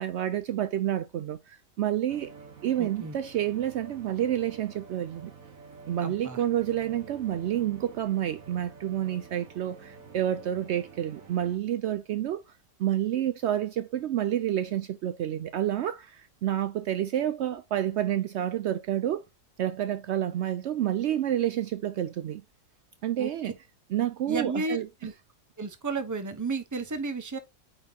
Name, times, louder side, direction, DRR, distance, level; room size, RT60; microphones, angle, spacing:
voice 1, 0.0-2.3 2.6-5.3 5.9-12.4 12.8-19.2 19.6-22.4 23.0-23.5 23.9-24.9, right 11 dB, 90° right, 0.6 m, -29 dB
sound 1, 2.1-11.6, right 4 dB, 60° right, 1.8 m, -49 dB
voice 2, 2.8-3.1 6.0-6.4 23.2-23.5 24.3-25.1 25.6-27.4, right 3 dB, 15° right, 0.6 m, -33 dB
8.9 x 3.9 x 2.8 m
omnidirectional pair, 1.7 m